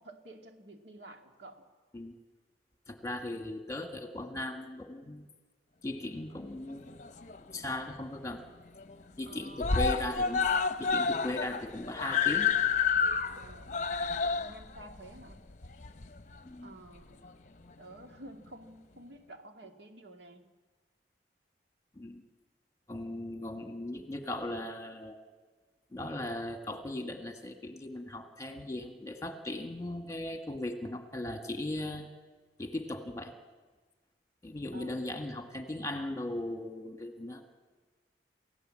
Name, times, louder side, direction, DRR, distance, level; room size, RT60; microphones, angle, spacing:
voice 1, 0.0-1.7 9.3-9.8 13.3-15.4 16.6-17.3 17.8-20.5 34.7-35.0, right 1 dB, 80° right, 4 dB, 2.3 m, -51 dB
voice 2, 2.9-5.3 5.8-7.0 7.5-8.4 9.2-10.5 10.8-12.5 16.4-16.7 21.9-22.3 22.9-25.2 25.9-32.1 32.6-33.3 34.4-37.4, left 1 dB, 20° left, 5 dB, 1.7 m, -38 dB
Screaming, 6.7-7.6 8.0-8.1 8.4-8.5 8.8-9.3 9.6-16.4 17.2-17.3, left 5 dB, 40° left, 0.8 m, -30 dB
28.5 x 16.0 x 7.7 m, 1.4 s
head